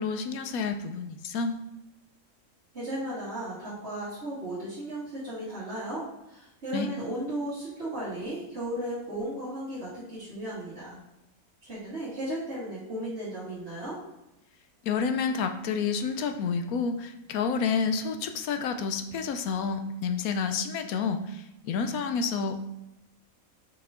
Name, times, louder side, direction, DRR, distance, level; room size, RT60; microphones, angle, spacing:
voice 1, 0.0-1.6 6.7-6.9 14.8-22.5, left 5 dB, 80° left, 7 dB, 1.1 m, -29 dB
voice 2, 2.7-11.0 11.6-14.0, right 1 dB, 45° right, -11 dB, 2.6 m, -35 dB
5.7 x 5.6 x 3.7 m, 0.91 s
omnidirectional pair, 1.5 m